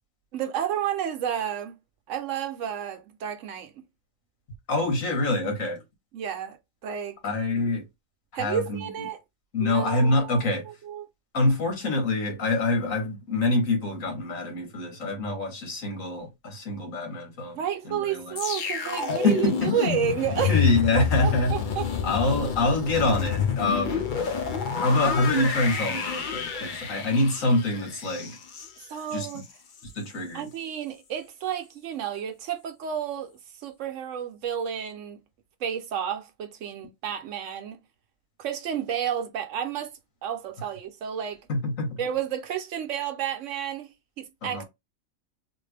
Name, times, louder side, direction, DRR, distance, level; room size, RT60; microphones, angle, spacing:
voice 1, 0.3-1.8 2.1-3.7 6.1-6.6 6.8-7.2 8.3-9.2 9.6-11.0 17.5-20.6 21.2-22.1 28.8-29.4 30.3-35.2 35.6-37.8 38.4-41.4 42.0-44.6, right 9 dB, 70° right, 1.0 m, -31 dB
voice 2, 4.7-5.8 7.2-7.8 8.3-9.1 9.5-10.7 11.3-17.6 17.9-18.4 19.2-19.7 20.5-21.6 22.0-24.3 24.8-28.4 29.1-29.4 30.0-30.5 41.5-42.0 44.4-44.6, left 2 dB, 80° left, 1.7 m, -26 dB
sound 1, 18.4-29.5 29.8-30.0, left 7 dB, 50° left, 0.6 m, -29 dB
3.4 x 2.6 x 3.3 m
omnidirectional pair, 1.4 m